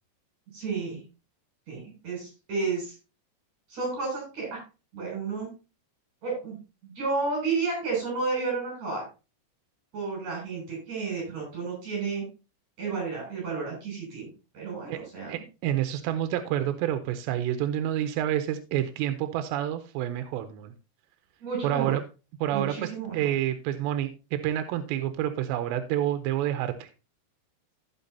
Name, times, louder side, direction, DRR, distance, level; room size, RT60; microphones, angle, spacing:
voice 1, 0.5-1.0 1.7-2.9 3.7-4.6 4.9-5.5 6.2-6.6 6.8-9.0 9.9-12.2 12.8-14.3 14.5-15.4 21.4-21.9 22.5-23.3, right 4 dB, 40° right, -1 dB, 7.6 m, -31 dB
voice 2, 15.3-20.7 21.6-22.0 22.4-26.9, right 12 dB, 90° right, 9 dB, 2.9 m, -28 dB
15.5 x 5.8 x 2.7 m, 0.31 s
omnidirectional pair, 4.9 m